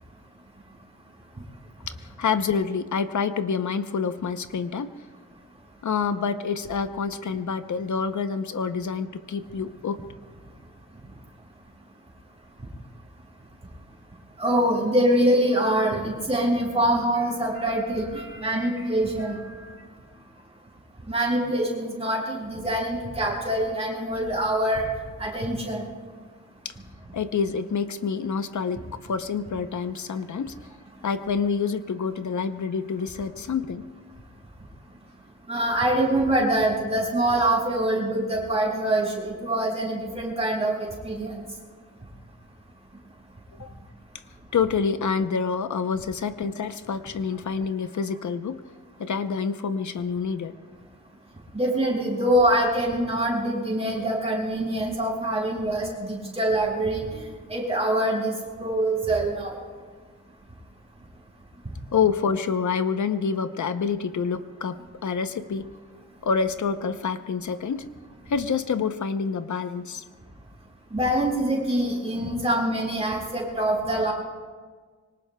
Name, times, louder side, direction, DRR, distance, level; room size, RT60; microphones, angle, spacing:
voice 1, 1.9-4.9 5.8-10.1 26.6-26.7 27.1-30.5 31.0-33.8 43.6-43.7 44.5-48.6 49.0-50.5 61.9-65.7 66.2-67.9 68.3-70.0, left 6 dB, 70° left, 10 dB, 0.7 m, -27 dB
voice 2, 14.4-19.4 21.1-24.9 25.2-25.8 35.5-41.4 51.5-57.2 57.5-58.3 58.6-59.6 70.9-74.1, right 1 dB, 20° right, -5 dB, 6.1 m, -24 dB
25.5 x 24.5 x 2.2 m, 1.5 s
wide cardioid pair, 155°, 31 cm